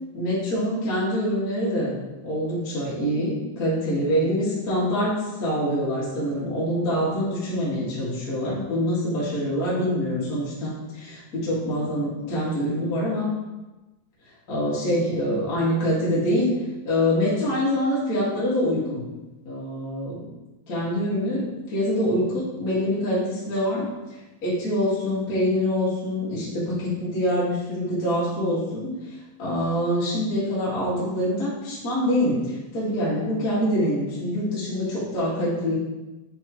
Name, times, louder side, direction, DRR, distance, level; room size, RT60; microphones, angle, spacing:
voice 1, 0.1-13.3 14.5-16.6 16.8-19.0 19.4-20.2 20.7-23.9 24.4-35.7, equal, 75° left, -9 dB, 0.7 m, -25 dB
9.0 x 3.6 x 3.0 m, 1.1 s
omnidirectional pair, 4.9 m